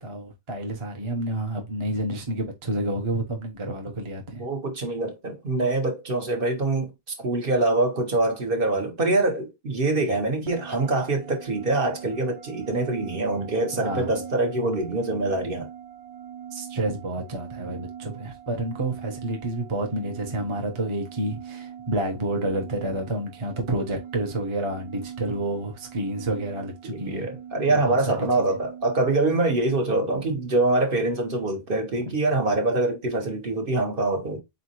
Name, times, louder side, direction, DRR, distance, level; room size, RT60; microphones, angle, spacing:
voice 1, 0.0-4.4 13.8-14.1 14.6-14.8 16.5-27.3 27.7-28.6, right 1 dB, 30° right, 0.8 m, -29 dB
voice 2, 4.4-6.9 7.2-15.7 26.8-34.4, right 2 dB, 55° right, 1.3 m, -24 dB
sound 1, 10.5-29.2, right 9 dB, 80° right, 1.0 m, -42 dB
4.1 x 4.0 x 2.9 m
omnidirectional pair, 1.1 m